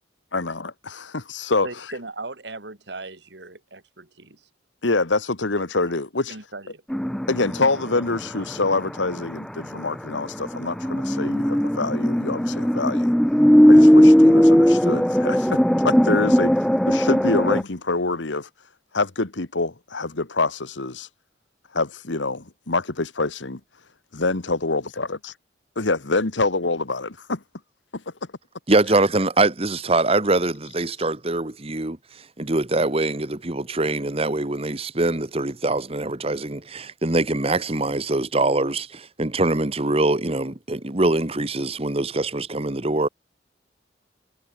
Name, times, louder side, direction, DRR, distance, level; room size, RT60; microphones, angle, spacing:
voice 1, 0.3-1.7 4.8-6.3 7.3-13.1 13.7-16.5 16.9-18.5 18.9-21.1 21.7-23.6 24.2-25.3 25.8-27.4 27.9-28.0, left 3 dB, 85° left, 1.7 m, -25 dB
voice 2, 1.6-4.5 6.3-6.8, right 3 dB, 70° right, 3.0 m, -38 dB
sound 1, 6.9-8.4 8.6-9.2 9.6-9.7 10.5-17.6, equal, ahead, 0.3 m, -17 dB
voice 3, 28.7-32.0 32.4-43.1, right 2 dB, 35° right, 1.4 m, -23 dB
head